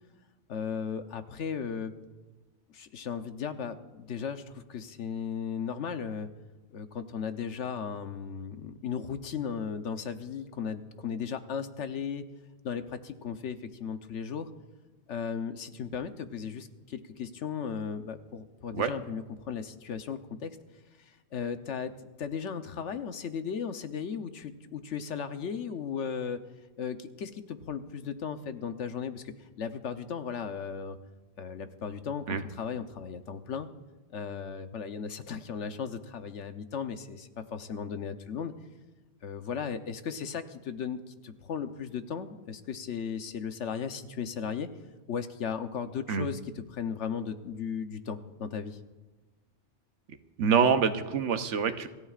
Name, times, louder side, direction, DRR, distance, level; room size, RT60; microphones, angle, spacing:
voice 1, 0.5-1.9 2.7-6.3 6.7-12.2 12.6-14.5 15.1-20.5 21.3-26.4 26.8-29.2 29.6-31.0 31.4-32.2 32.5-33.7 34.1-38.5 39.2-44.7 45.1-48.8, left 7 dB, 85° left, 8 dB, 1.2 m, -36 dB
voice 2, 50.4-51.9, right 6 dB, 90° right, 9 dB, 1.2 m, -25 dB
26.0 x 14.5 x 2.4 m, 1.2 s
omnidirectional pair, 1.2 m